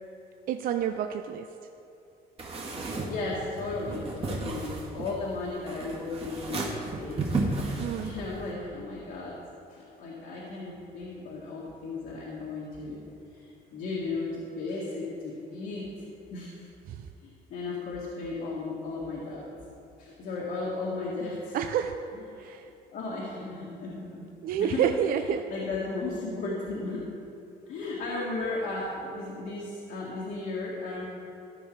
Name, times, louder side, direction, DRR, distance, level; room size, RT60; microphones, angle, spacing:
voice 1, 0.5-1.5 7.8-8.1 16.9-17.1 21.5-21.9 22.4-22.7 24.4-25.5, right 9 dB, 60° right, 7 dB, 0.4 m, -29 dB
sound 1, 2.4-8.5, right 3 dB, 35° right, 1.8 m, -34 dB
voice 2, 3.1-6.7 6.9-7.3 8.0-9.3 9.7-13.0 13.3-15.8 16.3-16.7 17.2-19.5 20.0-21.6 22.3-22.5 22.9-24.3 24.6-24.9 25.2-25.3 25.5-27.0 27.7-31.0, left 3 dB, 70° left, -5 dB, 1.8 m, -35 dB
14.0 x 5.7 x 4.6 m, 2.8 s
cardioid pair, 110°, 17 cm